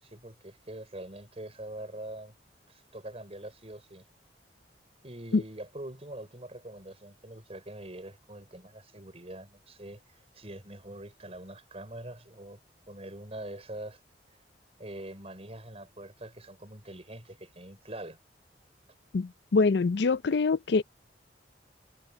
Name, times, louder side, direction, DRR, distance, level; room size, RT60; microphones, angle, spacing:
voice 1, 0.0-2.3 2.7-4.1 5.0-12.6 12.9-14.0 14.8-18.2, right 1 dB, 35° right, 5.5 m, -44 dB
voice 2, 19.1-20.8, left 4 dB, 70° left, 0.5 m, -25 dB
head